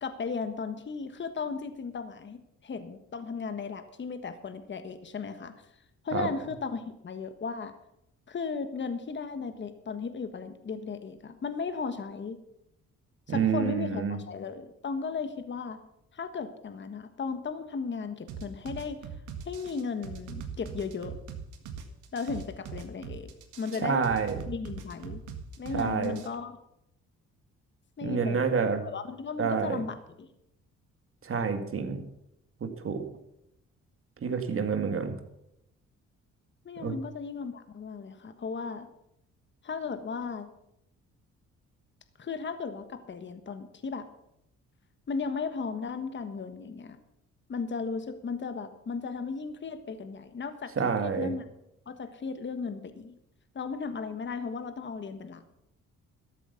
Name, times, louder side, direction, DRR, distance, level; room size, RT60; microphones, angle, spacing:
voice 1, 0.0-5.5 6.0-7.7 8.3-12.4 13.3-15.8 16.1-19.1 19.4-21.2 22.1-23.3 23.6-24.1 24.5-25.2 25.6-26.6 28.0-28.6 28.8-30.3 36.6-38.9 39.6-40.5 42.2-44.1 45.1-47.0 47.5-50.7 51.0-51.4 51.9-53.2 53.5-55.4, left 5 dB, 40° left, 9 dB, 1.4 m, -36 dB
voice 2, 13.3-14.2 23.8-24.4 25.7-26.1 28.0-28.8 29.4-29.8 31.2-32.0 32.6-33.0 34.2-35.1 36.8-36.9 50.8-51.3, right 6 dB, 45° right, 7 dB, 2.0 m, -28 dB
sound 1, 18.3-26.3, right 6 dB, 85° right, 1.8 m, -41 dB
13.0 x 8.4 x 7.0 m, 0.80 s
cardioid pair, 90°, 30 cm